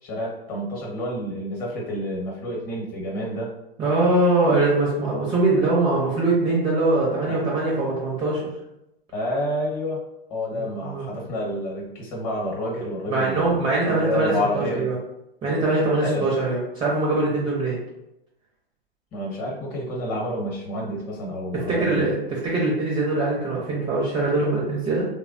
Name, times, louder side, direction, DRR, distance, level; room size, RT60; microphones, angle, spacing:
voice 1, 0.0-3.5 5.0-5.1 7.3-7.4 9.1-10.0 10.3-14.9 16.0-16.3 19.1-22.1, left 1 dB, 30° left, -2 dB, 1.1 m, -29 dB
voice 2, 3.8-8.4 10.5-11.1 13.1-15.0 15.4-17.8 21.5-22.2 22.4-25.0, right 2 dB, 15° right, -5 dB, 0.6 m, -22 dB
3.2 x 2.2 x 2.6 m, 0.85 s
hypercardioid pair, 120°, 30 cm